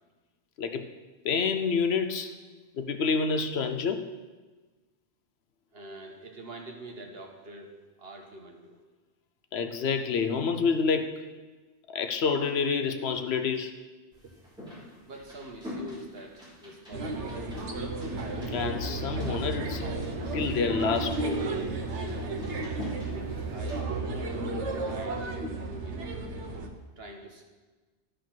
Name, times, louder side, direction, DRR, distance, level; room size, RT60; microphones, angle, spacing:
voice 1, 1.2-2.4 2.8-4.1 9.5-11.3 11.9-13.8 18.5-19.9 20.3-21.4, left 5 dB, 65° left, 8 dB, 0.9 m, -28 dB
voice 2, 5.7-8.8 14.2-14.3 15.0-17.5 22.6-26.0 27.0-27.4, right 2 dB, 60° right, 2 dB, 1.4 m, -46 dB
sound 1, 14.1-23.8, left 1 dB, 5° right, 3.3 m, -45 dB
sound 2, 16.9-26.7, right 2 dB, 85° right, 1.3 m, -33 dB
12.0 x 5.1 x 6.0 m, 1.3 s
omnidirectional pair, 1.2 m